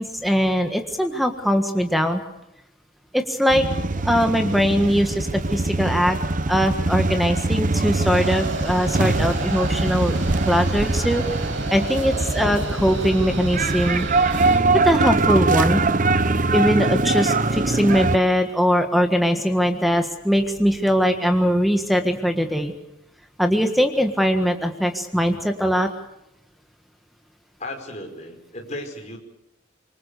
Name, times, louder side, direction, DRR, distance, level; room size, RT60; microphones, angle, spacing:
voice 1, 0.0-2.2 3.1-3.6 4.0-6.2 6.5-10.2 10.4-11.2 11.7-14.1 14.8-15.8 16.5-22.7 23.4-25.9, equal, ahead, 6 dB, 1.6 m, -21 dB
sound 1, 3.5-18.2, right 3 dB, 40° right, 0.9 m, -22 dB
sound 2, 8.1-14.6, right 2 dB, 75° right, 6.0 m, -33 dB
voice 2, 25.1-25.4 27.6-29.2, left 1 dB, 35° left, 2 dB, 5.2 m, -37 dB
26.5 x 23.5 x 6.7 m, 0.87 s
head